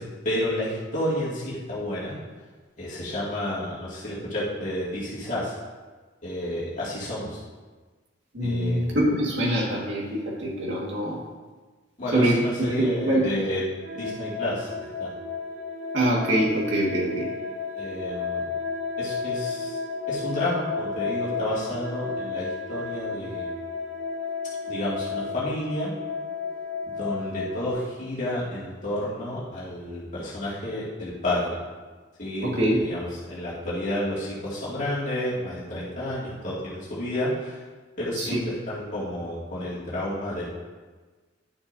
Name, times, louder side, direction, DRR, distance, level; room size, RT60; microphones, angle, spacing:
voice 1, 0.0-2.2 2.8-5.5 6.2-7.4 8.4-9.0 12.0-13.7 13.9-14.7 15.0-15.1 17.8-18.4 19.0-19.8 20.1-23.5 24.7-25.9 27.0-31.5 32.2-37.6 38.0-40.4, left 1 dB, 40° left, -9 dB, 2.3 m, -30 dB
voice 2, 8.3-11.2 12.1-13.4 15.9-17.3 32.4-32.8 38.2-38.4, right 1 dB, 75° right, -4 dB, 1.9 m, -24 dB
sound 1, 13.8-27.7, left 4 dB, 45° right, 1.3 m, -32 dB
11.0 x 7.0 x 2.7 m, 1.3 s
head